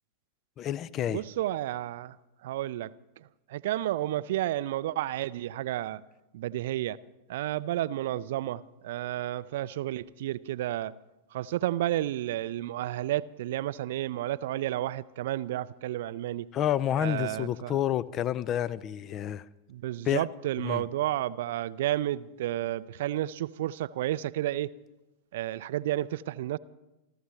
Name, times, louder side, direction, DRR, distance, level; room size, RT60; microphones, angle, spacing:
voice 1, 0.6-1.2 16.5-19.4 20.1-20.2 20.6-20.8, left 11 dB, 30° left, 0.4 m, -29 dB
voice 2, 1.1-2.2 2.4-2.9 3.5-6.0 6.3-7.0 7.3-10.9 11.3-16.5 17.0-17.8 19.7-24.7 25.3-26.6, right 14 dB, 55° right, 0.4 m, -31 dB
28.0 x 13.0 x 3.2 m
figure-of-eight pair, 90°, 0 cm